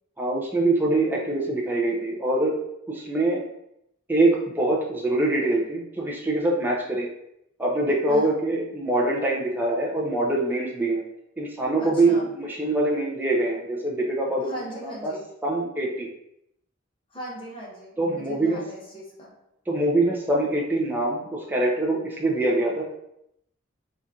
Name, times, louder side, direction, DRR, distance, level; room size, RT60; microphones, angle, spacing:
voice 1, 0.2-2.5 2.9-3.4 4.1-7.1 7.6-11.0 11.4-14.5 14.8-15.1 15.4-16.1 18.0-18.6 19.7-22.8, right 2 dB, 10° right, -3 dB, 0.5 m, -24 dB
voice 2, 11.8-12.3 14.4-15.2 17.1-19.3, right 1 dB, 25° left, -4 dB, 1.0 m, -38 dB
4.0 x 2.5 x 3.6 m, 0.80 s
head